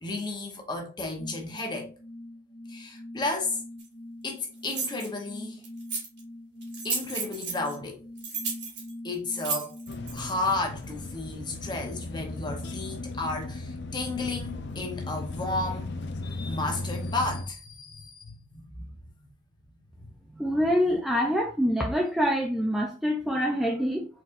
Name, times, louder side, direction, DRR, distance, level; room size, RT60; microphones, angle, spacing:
voice 1, 0.0-1.9 2.7-3.6 4.2-5.6 6.8-8.0 9.0-9.8 10.0-15.9 16.2-18.9 20.0-20.1, left 2 dB, 20° left, 0.8 m, -33 dB
sound 1, 1.2-10.0, left 1 dB, 25° right, 1.5 m, -44 dB
sound 2, 3.8-3.9 4.6-5.1 5.6-6.2 6.6-7.7 8.2-10.3, right 5 dB, 60° right, 2.5 m, -33 dB
sound 3, 9.9-17.4, left 2 dB, 60° left, 0.5 m, -36 dB
voice 2, 20.3-24.1, equal, ahead, 0.4 m, -25 dB
4.5 x 3.9 x 2.5 m
head